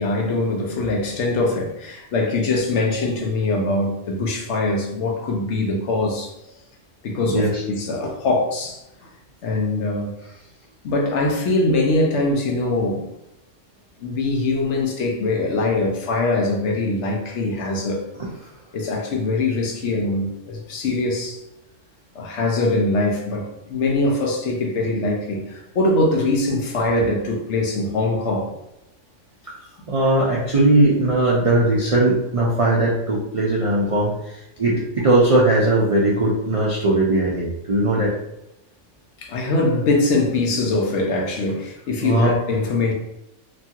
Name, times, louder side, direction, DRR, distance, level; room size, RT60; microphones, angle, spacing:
voice 1, 0.0-6.3 7.0-8.8 9.4-10.2 10.8-13.1 14.0-18.0 18.7-21.4 22.1-28.5 39.2-42.9, left 2 dB, 65° left, 0.9 m, -22 dB
voice 2, 7.3-7.6 18.2-18.5 29.4-29.6 29.9-38.1 42.0-42.4, right 2 dB, 55° right, 0.3 m, -19 dB
3.0 x 2.3 x 2.7 m
omnidirectional pair, 1.3 m